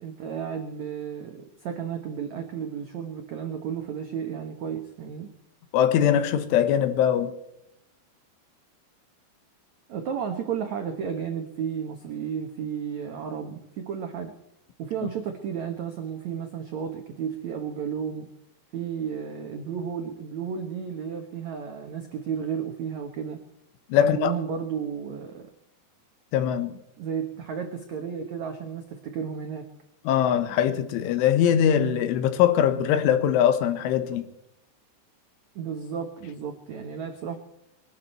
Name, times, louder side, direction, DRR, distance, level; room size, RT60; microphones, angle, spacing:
voice 1, 0.0-5.3 9.9-14.3 14.8-18.3 18.7-23.4 23.9-25.5 27.0-29.7 35.5-37.4, right 7 dB, 85° right, 1.6 m, -33 dB
voice 2, 5.7-7.4 23.9-24.3 26.3-26.8 30.1-34.3, left 9 dB, 90° left, 3.8 m, -22 dB
22.5 x 12.5 x 4.4 m
omnidirectional pair, 5.4 m